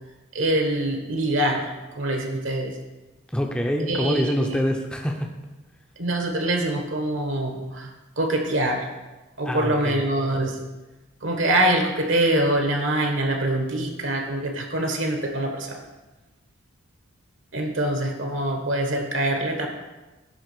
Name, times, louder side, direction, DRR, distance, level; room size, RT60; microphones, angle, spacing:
voice 1, 0.3-1.7 1.9-2.7 3.9-4.6 6.0-7.9 8.2-8.9 9.4-10.6 11.2-15.8 17.5-19.7, right 1 dB, 60° right, 3 dB, 1.2 m, -24 dB
voice 2, 3.3-5.3 9.4-10.0, equal, 5° left, 2 dB, 0.7 m, -25 dB
10.5 x 3.6 x 6.8 m, 1.1 s
head